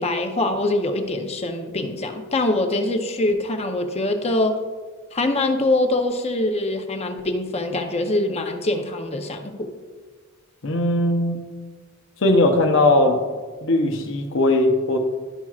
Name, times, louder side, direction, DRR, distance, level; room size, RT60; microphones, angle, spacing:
voice 1, 0.0-4.6 5.1-9.7, left 2 dB, 30° left, 5 dB, 0.7 m, -23 dB
voice 2, 10.6-11.4 12.2-13.2 13.6-15.0, left 2 dB, 65° left, 3 dB, 0.7 m, -19 dB
12.0 x 5.8 x 2.4 m, 1.4 s
head